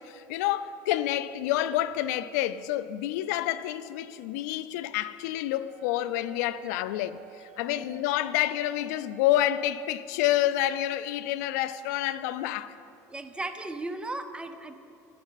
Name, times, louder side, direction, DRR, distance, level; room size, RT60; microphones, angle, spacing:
voice 1, 0.0-12.8, left 13 dB, 80° left, 0.4 m, -28 dB
Wind instrument woodwind instrument, 5.7-9.9, right 9 dB, 75° right, 1.2 m, -55 dB
voice 2, 7.7-8.0 13.1-14.7, right 2 dB, 10° right, 0.7 m, -36 dB
13.0 x 9.0 x 4.0 m
supercardioid pair, 110°, 9 cm